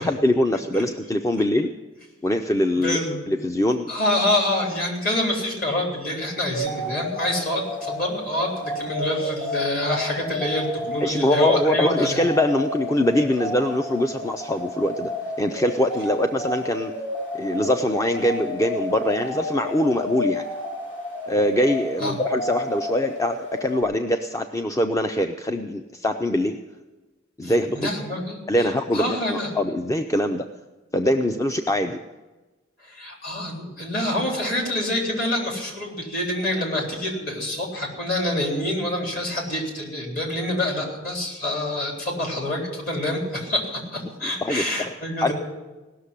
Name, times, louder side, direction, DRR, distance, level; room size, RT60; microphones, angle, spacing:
voice 1, 0.0-1.7 2.2-3.0 3.3-3.9 11.0-15.1 15.4-16.9 17.3-20.4 21.3-26.6 27.4-27.9 28.5-30.5 30.9-32.0 44.4-44.9 45.2-45.3, left 1 dB, 15° left, 7 dB, 0.5 m, -23 dB
voice 2, 2.8-3.3 3.9-12.3 22.0-22.2 27.4-29.5 32.8-45.3, left 1 dB, 50° left, 0 dB, 3.7 m, -27 dB
sound 1, 6.5-23.8, left 1 dB, 75° left, 7.0 m, -31 dB
17.5 x 6.6 x 9.8 m, 1.2 s
head